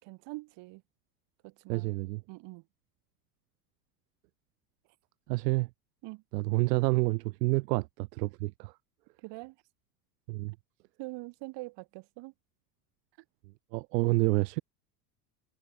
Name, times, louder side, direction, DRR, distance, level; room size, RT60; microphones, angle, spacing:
voice 1, 0.0-0.8 1.4-1.9 2.3-2.6 6.0-6.2 9.2-9.6 11.0-12.3, right 23 dB, 60° right, 5.2 m, -44 dB
voice 2, 1.7-2.2 5.3-5.7 6.3-8.7 10.3-10.5 13.7-14.6, right 22 dB, 85° right, 0.6 m, -28 dB
supercardioid pair, 100°, 48 cm